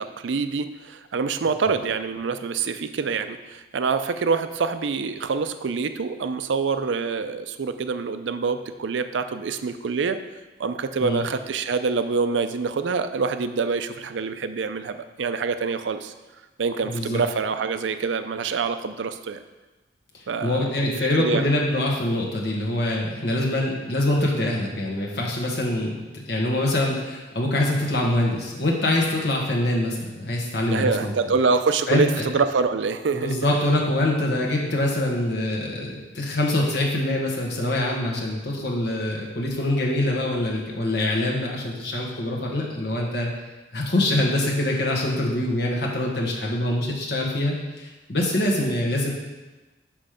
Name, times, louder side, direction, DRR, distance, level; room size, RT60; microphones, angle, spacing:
voice 1, 0.0-10.2 10.6-16.1 16.6-19.4 20.3-21.5 30.7-33.3, right 5 dB, 90° right, 10 dB, 0.5 m, -26 dB
voice 2, 16.8-17.2 20.4-31.1 31.9-32.2 33.1-43.3 43.7-49.1, left 1 dB, 70° left, -2 dB, 1.4 m, -24 dB
6.2 x 5.5 x 5.0 m, 1.2 s
head